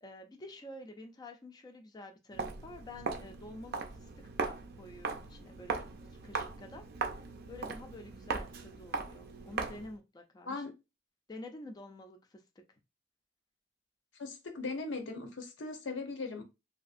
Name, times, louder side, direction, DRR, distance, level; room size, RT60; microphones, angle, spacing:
voice 1, 0.0-4.1 4.4-5.9 6.2-6.9 7.5-10.6 11.3-12.4, left 1 dB, 20° left, 0.4 m, -49 dB
Walk footsteps, 2.3-10.0, right 4 dB, 60° right, 0.5 m, -39 dB
voice 2, 14.1-16.4, left 3 dB, 85° left, 0.7 m, -39 dB
2.8 x 2.5 x 2.4 m
head